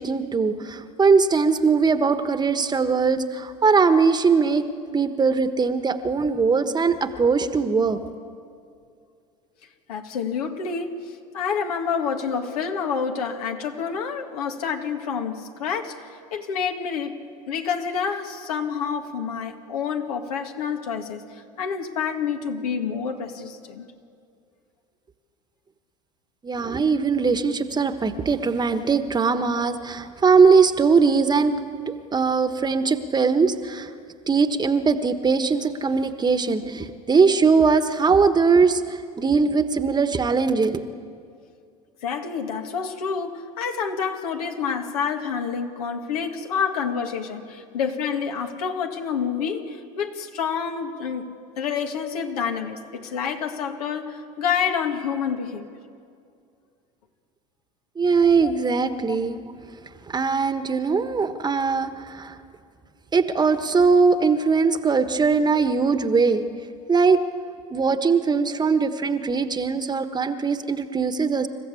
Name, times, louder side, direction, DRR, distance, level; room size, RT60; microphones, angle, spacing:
voice 1, 0.0-4.7 4.9-8.0 26.4-31.5 31.9-33.9 34.3-40.8 58.0-59.4 60.1-62.4 63.1-66.5 66.9-67.2 67.7-71.5, right 5 dB, 20° right, 10 dB, 1.3 m, -20 dB
voice 2, 9.9-17.2 17.5-23.9 42.0-55.7 58.4-58.5, left 6 dB, 85° left, 4 dB, 2.0 m, -28 dB
27.5 x 14.5 x 8.5 m, 2.3 s
hypercardioid pair, 85°, 19 cm